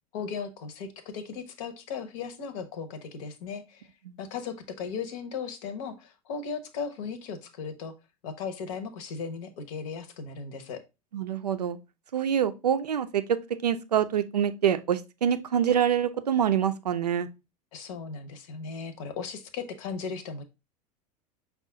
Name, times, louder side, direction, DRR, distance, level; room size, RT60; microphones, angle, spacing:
voice 1, 0.1-3.9 4.2-7.9 8.2-10.8 17.7-20.4, left 5 dB, 55° left, 0.8 m, -37 dB
voice 2, 11.1-11.8 12.1-17.3, right 9 dB, 80° right, 0.5 m, -26 dB
5.5 x 2.4 x 3.6 m
figure-of-eight pair, 80°, 20 cm